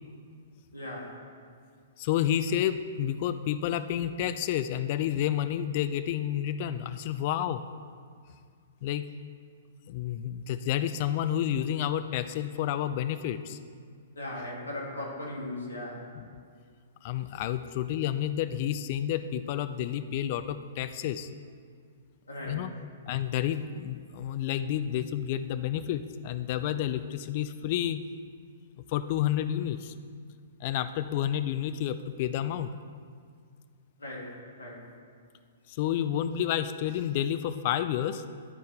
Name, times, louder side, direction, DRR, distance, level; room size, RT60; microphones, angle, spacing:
voice 1, 0.7-1.2 14.2-16.1 22.3-22.7 34.0-34.9, left 1 dB, 80° left, -3 dB, 2.3 m, -38 dB
voice 2, 2.0-7.6 8.8-9.0 9.9-13.6 17.0-21.3 22.4-22.7 23.1-28.0 28.9-29.9 30.6-32.7 35.7-38.2, left 11 dB, 45° left, 12 dB, 0.3 m, -30 dB
11.0 x 4.4 x 4.7 m, 2.1 s
figure-of-eight pair, 115°, 0 cm